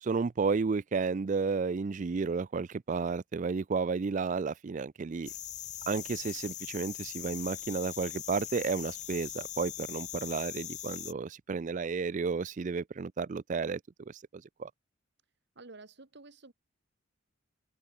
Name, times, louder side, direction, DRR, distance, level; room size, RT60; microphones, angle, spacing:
voice 1, 0.0-5.3 5.9-13.8 14.1-14.7, right 4 dB, 40° right, 0.4 m, -32 dB
sound 1, 5.3-11.1, left 13 dB, 35° left, 0.5 m, -41 dB
voice 2, 15.5-16.5, right 3 dB, 55° right, 1.6 m, -51 dB
open air
head